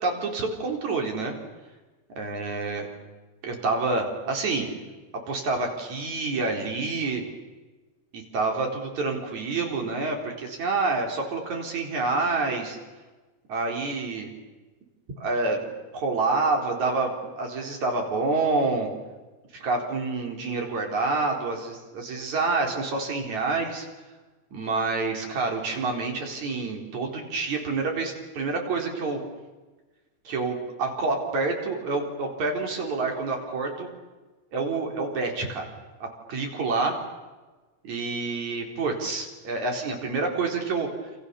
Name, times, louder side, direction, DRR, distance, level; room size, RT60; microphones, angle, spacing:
voice 1, 0.0-1.3 2.2-2.9 3.4-4.7 5.3-7.2 8.1-12.8 13.5-14.3 15.2-18.9 19.5-23.9 24.5-29.2 30.3-33.9 34.5-35.7 36.0-36.9 37.8-40.9, right 3 dB, 75° right, 2 dB, 5.6 m, -28 dB
28.5 x 28.5 x 7.1 m, 1.2 s
omnidirectional pair, 3.3 m